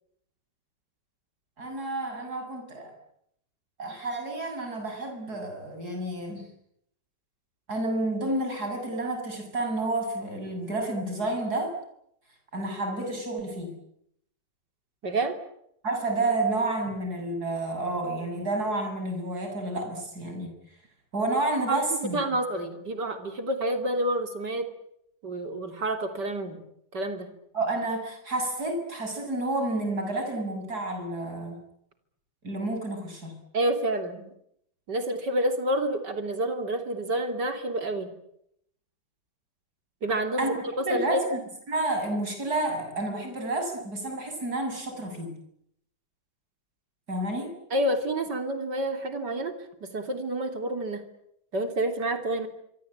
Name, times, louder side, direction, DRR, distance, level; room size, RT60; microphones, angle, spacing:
voice 1, 1.6-2.9 3.8-6.4 7.7-11.7 12.5-13.8 15.8-20.5 21.1-22.2 27.5-31.6 32.4-33.4 40.4-41.4 41.7-45.3 47.1-47.5, right 2 dB, 65° right, 4 dB, 7.7 m, -30 dB
voice 2, 15.0-15.4 21.7-21.8 22.1-24.7 25.2-26.6 26.9-27.3 33.5-34.3 34.9-38.1 40.0-41.2 47.7-49.5 49.8-51.0 51.5-52.5, right 1 dB, 85° right, 7 dB, 3.7 m, -28 dB
25.5 x 25.0 x 8.8 m, 0.75 s
omnidirectional pair, 1.8 m